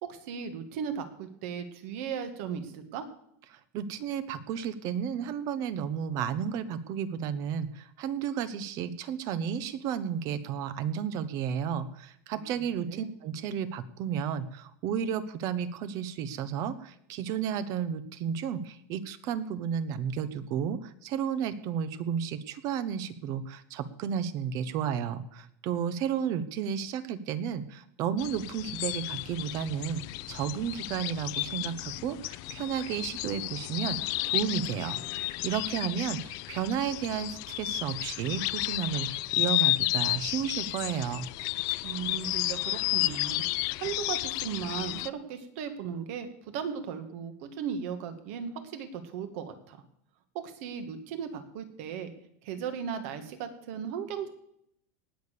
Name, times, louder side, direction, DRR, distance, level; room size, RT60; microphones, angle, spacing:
voice 1, 0.0-3.0 12.3-13.1 41.8-43.4 43.8-49.8 50.3-52.1 52.4-54.3, right 7 dB, 65° right, 8 dB, 2.1 m, -37 dB
voice 2, 3.5-30.0 30.3-34.0 34.3-41.3, right 8 dB, 45° right, 14 dB, 1.1 m, -32 dB
sound 1, 28.2-45.1, left 20 dB, 50° left, 0.5 m, -32 dB
18.5 x 6.8 x 6.9 m, 0.73 s
supercardioid pair, 150°, 8 cm